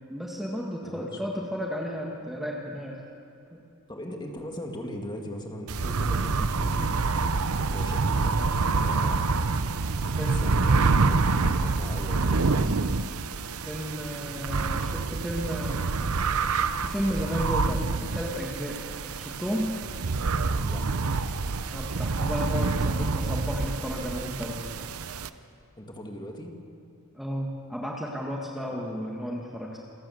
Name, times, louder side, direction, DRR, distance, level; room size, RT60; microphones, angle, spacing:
voice 1, 0.1-3.0 10.2-10.5 13.6-15.9 16.8-18.9 19.2-19.7 21.7-24.6 27.2-29.8, equal, ahead, -2 dB, 1.7 m, -33 dB
voice 2, 3.9-6.9 7.6-9.2 9.9-12.5 20.6-20.9 25.8-26.5 28.7-28.8, equal, 20° left, 2 dB, 2.3 m, -39 dB
sound 1, 5.7-25.3, right 4 dB, 70° right, 0.7 m, -27 dB
28.0 x 12.5 x 7.9 m, 2.8 s
head